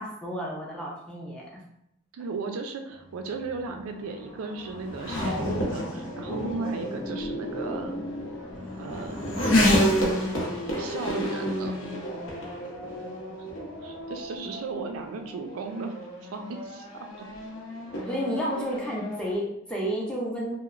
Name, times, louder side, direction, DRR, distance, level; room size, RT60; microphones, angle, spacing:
voice 1, 0.0-1.5 18.1-20.6, equal, 5° left, -4 dB, 0.4 m, -31 dB
voice 2, 2.1-7.9 8.8-9.4 10.8-11.8 13.8-15.9 16.3-17.3, right 4 dB, 90° right, 5 dB, 0.4 m, -35 dB
Race car auto racing / Accelerating revving vroom, 3.1-19.3, equal, 70° left, 0.7 m, -30 dB
2.9 x 2.0 x 2.4 m, 0.78 s
head